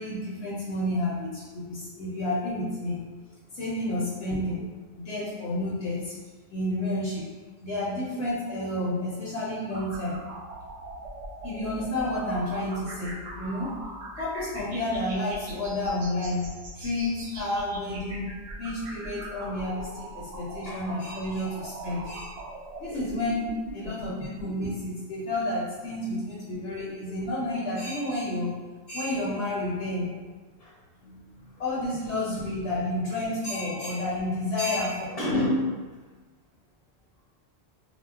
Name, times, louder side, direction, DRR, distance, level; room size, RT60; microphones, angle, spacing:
voice 1, 0.0-3.0 3.5-4.6 4.9-6.2 6.5-7.3 7.6-10.2 11.4-13.7 14.1-16.5 16.7-18.3 18.6-22.3 22.8-28.5 28.9-30.1 31.6-35.0, left 1 dB, 75° left, -7 dB, 0.9 m, -30 dB
sound 1, 9.7-24.7, right 1 dB, 85° right, 0.9 m, -41 dB
voice 2, 31.0-31.5 35.1-35.9, left 1 dB, 40° left, -8 dB, 0.8 m, -29 dB
2.2 x 2.1 x 3.5 m, 1.3 s
omnidirectional pair, 1.1 m